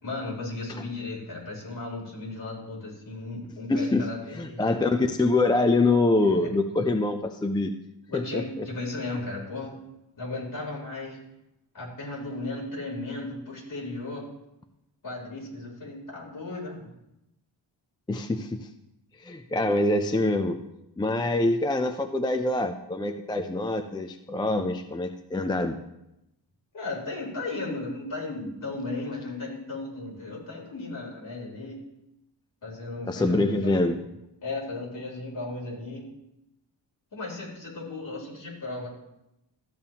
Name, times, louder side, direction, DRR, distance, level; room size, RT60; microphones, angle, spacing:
voice 1, 0.0-4.6 6.2-6.5 8.1-9.8 10.2-11.2 11.7-14.3 15.0-16.9 26.7-31.8 32.6-33.9 34.4-36.1 37.1-38.9, left 2 dB, 45° left, -3 dB, 3.7 m, -35 dB
voice 2, 3.7-4.1 4.3-7.7 8.1-8.7 18.1-18.7 19.2-20.6 21.0-25.8 33.0-34.0, left 2 dB, 10° left, 6 dB, 0.3 m, -25 dB
14.0 x 8.9 x 2.9 m, 0.88 s
wide cardioid pair, 145°, 44 cm